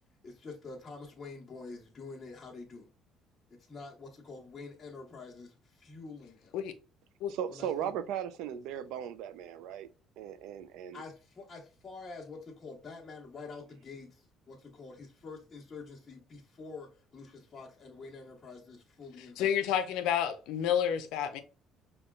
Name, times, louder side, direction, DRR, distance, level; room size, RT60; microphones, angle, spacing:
voice 1, 0.2-2.9 3.5-6.6 7.5-7.9 10.9-19.5, left 4 dB, 25° left, 1.1 m, -47 dB
voice 2, 7.3-9.9 10.2-11.0, right 9 dB, 85° right, 0.4 m, -37 dB
voice 3, 19.4-21.4, left 9 dB, 90° left, 0.5 m, -29 dB
5.2 x 2.3 x 2.3 m
cardioid pair, 130°, 0 cm